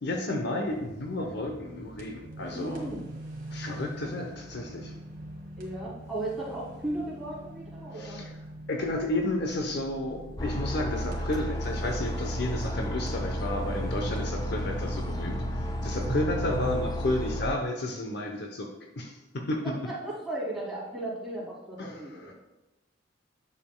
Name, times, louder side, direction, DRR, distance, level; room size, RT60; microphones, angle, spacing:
voice 1, 0.0-2.8 3.5-4.9 7.9-8.3 8.7-19.6 21.8-22.3, left 1 dB, 55° left, 3 dB, 0.8 m, -32 dB
sound 1, 0.6-16.9, right 1 dB, 45° right, 1.6 m, -41 dB
voice 2, 2.5-3.1 5.6-8.2 19.6-22.3, right 1 dB, ahead, -8 dB, 2.7 m, -36 dB
sound 2, 10.4-17.5, equal, 20° left, 0.5 m, -32 dB
10.5 x 6.8 x 2.2 m, 1.0 s
head